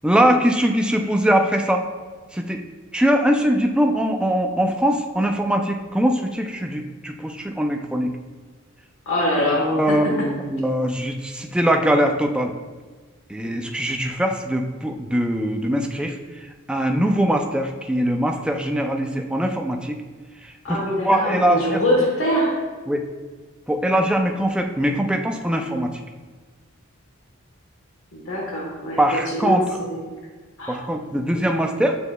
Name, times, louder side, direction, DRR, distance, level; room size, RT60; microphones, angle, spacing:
voice 1, 0.0-1.8 2.3-2.6 2.9-8.1 9.5-12.5 13.3-16.2 16.7-20.0 20.4-20.8 21.0-21.8 22.9-23.0 23.7-25.9 29.0-29.6 30.7-32.0, equal, 5° right, 3 dB, 0.3 m, -21 dB
voice 2, 9.1-10.3 13.4-13.6 20.6-22.5 28.1-30.0 30.6-30.9, equal, 70° left, -2 dB, 1.2 m, -24 dB
7.0 x 6.1 x 2.2 m, 1.4 s
head